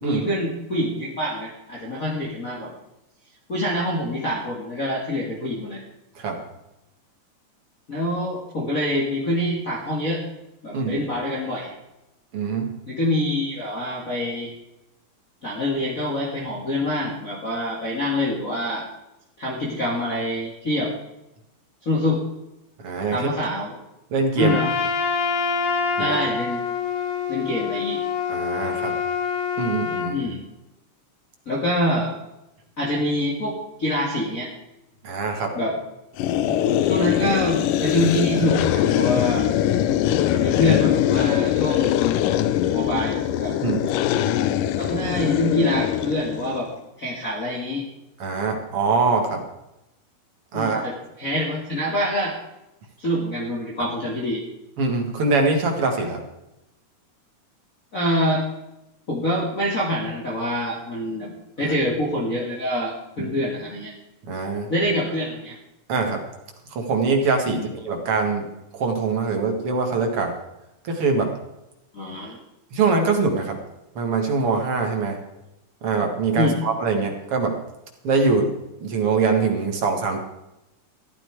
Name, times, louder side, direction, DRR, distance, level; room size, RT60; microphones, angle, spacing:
voice 1, 0.0-2.7 3.5-5.8 7.9-10.2 10.6-11.7 12.9-14.5 15.4-18.9 19.4-20.9 21.8-22.2 23.1-23.8 24.3-24.7 26.0-26.6 27.3-28.0 30.1-30.4 31.5-32.1 32.8-34.5 35.5-35.7 36.5-39.5 40.3-41.9 42.7-43.6 44.8-46.7 47.0-47.8 50.5-52.3 53.0-54.4 57.9-58.4 59.1-63.9 64.7-65.6 67.5-67.7 71.9-72.4 76.3-76.6, left 1 dB, 30° left, -4 dB, 2.2 m, -25 dB
voice 2, 10.7-11.0 12.3-12.7 22.8-23.3 24.1-24.6 26.0-26.2 28.3-29.0 29.6-30.2 35.0-35.5 43.6-43.9 48.2-49.4 50.5-50.9 53.8-53.9 54.8-56.2 61.6-61.8 63.2-63.3 64.3-64.7 65.9-66.2 66.7-68.5 68.7-70.3 70.8-71.3 72.7-73.6 74.0-75.2 75.8-77.6 78.0-78.5 78.8-80.2, right 4 dB, 50° right, 3 dB, 2.6 m, -23 dB
Trumpet, 24.4-30.1, left 6 dB, 70° left, 2.8 m, -26 dB
sound 1, 36.2-46.6, left 11 dB, 90° left, 2.4 m, -22 dB
14.0 x 12.0 x 4.8 m, 0.91 s
omnidirectional pair, 3.7 m